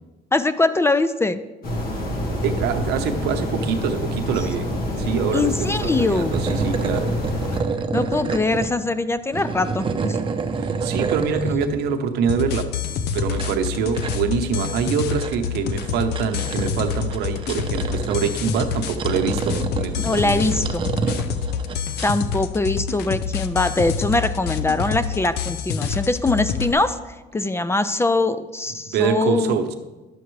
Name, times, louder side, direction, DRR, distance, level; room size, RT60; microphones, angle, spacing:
voice 1, 0.3-1.4 5.3-6.4 7.9-10.2 20.0-20.9 22.0-27.0 27.3-29.6, left 2 dB, 15° left, 0.4 m, -22 dB
sound 1, 1.6-7.6, left 1 dB, 60° left, 1.7 m, -27 dB
voice 2, 2.4-4.7 5.0-7.2 10.6-12.7 13.1-21.2 28.9-29.7, right 6 dB, 80° right, 0.8 m, -25 dB
sound 2, 6.2-8.7 9.1-11.7 13.0-22.1, right 4 dB, 30° right, 0.7 m, -28 dB
sound 3, 12.3-26.7, left 7 dB, 75° left, 0.6 m, -27 dB
11.0 x 6.9 x 3.2 m
cardioid pair, 110°, 17 cm